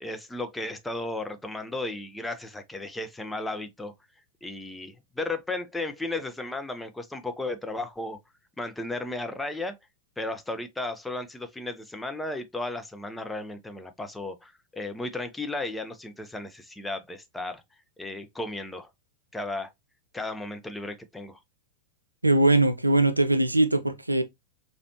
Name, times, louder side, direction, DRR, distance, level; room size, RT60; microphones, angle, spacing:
voice 1, 0.0-3.9 4.4-8.2 8.6-9.8 10.2-17.6 18.0-18.9 19.3-19.7 20.1-21.4, left 2 dB, 5° left, 0.7 m, -34 dB
voice 2, 22.2-24.2, right 2 dB, 85° right, 0.4 m, -21 dB
5.0 x 2.5 x 2.8 m
figure-of-eight pair, 90°, 0 cm